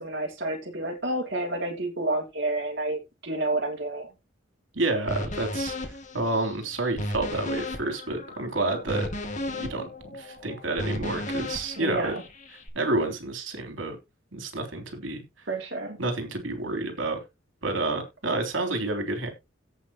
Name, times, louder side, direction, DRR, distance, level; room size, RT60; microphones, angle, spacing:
voice 1, 0.0-4.1 11.8-12.2 15.5-16.0, right 2 dB, 60° right, 2.9 m, -30 dB
voice 2, 4.7-5.7 6.1-9.1 9.6-12.2 12.7-14.0 14.3-15.2 16.0-17.2 17.6-19.3, right 2 dB, 75° right, 3.4 m, -29 dB
sound 1, 5.1-12.7, left 1 dB, 40° left, 2.4 m, -34 dB
17.0 x 5.7 x 3.0 m
head